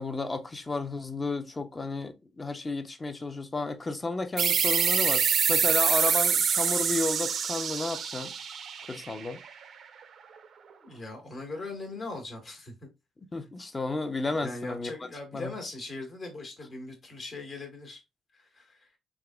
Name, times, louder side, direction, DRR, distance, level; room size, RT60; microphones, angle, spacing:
voice 1, 0.0-8.3 8.9-9.4 13.3-14.9 15.3-15.5, left 3 dB, 25° left, 0.5 m, -32 dB
sound 1, 4.4-9.6, right 7 dB, 60° right, 0.5 m, -26 dB
voice 2, 10.8-12.7 14.4-18.0 18.3-18.9, left 2 dB, 50° left, 1.4 m, -40 dB
3.5 x 2.9 x 2.2 m
cardioid pair, 90°, 0 cm